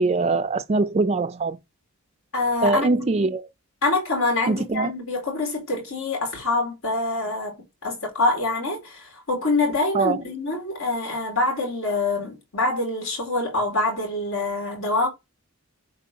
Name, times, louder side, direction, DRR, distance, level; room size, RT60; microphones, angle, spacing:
voice 1, 0.0-1.6 2.6-3.5 4.5-4.9 9.9-10.2, right 3 dB, 30° right, 0.4 m, -22 dB
voice 2, 2.3-2.9 3.2-3.3 3.8-15.1, left 2 dB, 70° left, 4.6 m, -25 dB
8.2 x 4.5 x 5.6 m
head